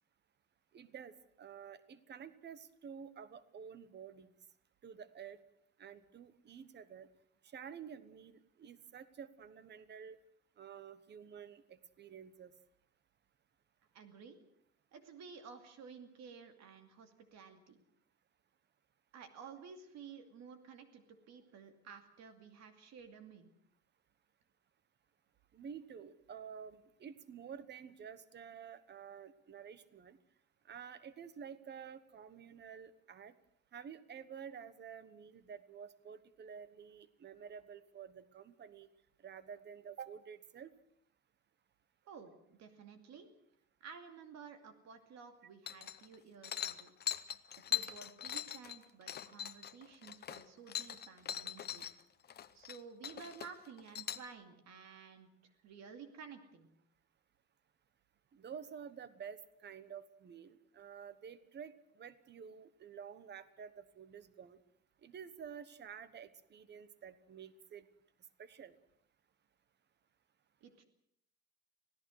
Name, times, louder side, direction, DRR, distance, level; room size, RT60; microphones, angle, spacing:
voice 1, 0.7-4.3 4.8-5.4 5.8-7.1 7.4-10.2 10.6-12.5 25.5-30.2 30.7-33.3 33.7-38.9 39.2-40.7 58.3-64.6 65.0-67.9 68.4-68.8, right 7 dB, 35° right, 15 dB, 1.2 m, -50 dB
voice 2, 13.9-14.4 14.9-17.8 19.1-23.5 42.0-43.3 43.8-46.9 47.3-51.9 52.3-56.7 70.6-70.8, right 6 dB, 65° right, 7 dB, 2.5 m, -53 dB
sound 1, 45.7-46.1 46.4-51.9 52.2-52.8 53.0-54.2, left 10 dB, 35° left, 0.8 m, -41 dB
25.5 x 17.0 x 6.5 m, 0.71 s
cardioid pair, 180°, 29 cm